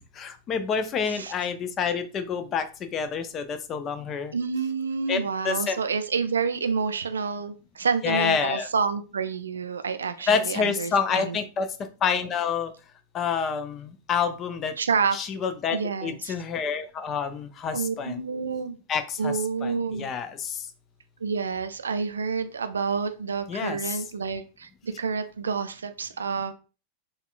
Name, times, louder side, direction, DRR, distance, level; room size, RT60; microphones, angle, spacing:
voice 1, 0.2-2.7 2.9-4.4 5.1-5.8 8.0-8.7 10.3-11.7 12.0-12.7 13.1-14.7 15.1-18.2 18.9-20.7 23.5-24.0, left 6 dB, 30° left, 9 dB, 0.4 m, -28 dB
voice 2, 4.3-10.9 11.2-11.4 14.8-15.2 15.7-16.4 17.7-18.8 19.2-20.1 21.2-26.5, right 5 dB, 70° right, 10 dB, 0.3 m, -28 dB
4.1 x 2.3 x 2.4 m, 0.34 s
figure-of-eight pair, 90°, 0 cm